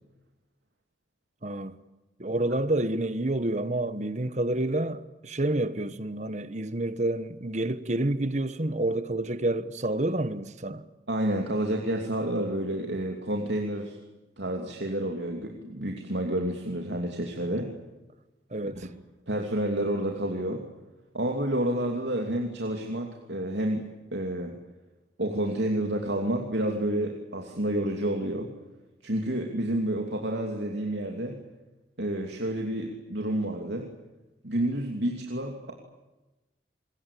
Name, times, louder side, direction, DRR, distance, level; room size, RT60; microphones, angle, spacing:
voice 1, 1.4-1.8 2.2-10.8 18.5-18.9, right 1 dB, 40° right, 1.2 m, -29 dB
voice 2, 11.1-14.0 14.4-17.7 18.6-18.7 19.3-20.6 21.1-23.8 24.1-24.5 25.2-28.5 29.0-31.4 32.0-33.9 34.4-35.7, right 1 dB, 80° right, 2.9 m, -29 dB
26.5 x 22.0 x 8.6 m
head